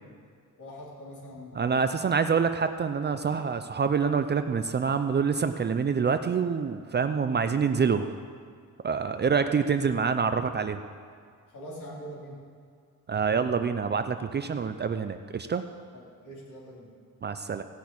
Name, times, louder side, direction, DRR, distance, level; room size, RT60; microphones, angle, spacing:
voice 1, 0.6-2.0 9.1-9.5 11.5-12.4 15.9-16.9, equal, 60° left, -5 dB, 3.7 m, -44 dB
voice 2, 1.5-8.1 8.8-10.8 13.1-15.6 17.2-17.6, right 6 dB, 30° right, 9 dB, 0.4 m, -26 dB
16.0 x 6.1 x 8.5 m, 2.1 s
wide cardioid pair, 160°, 33 cm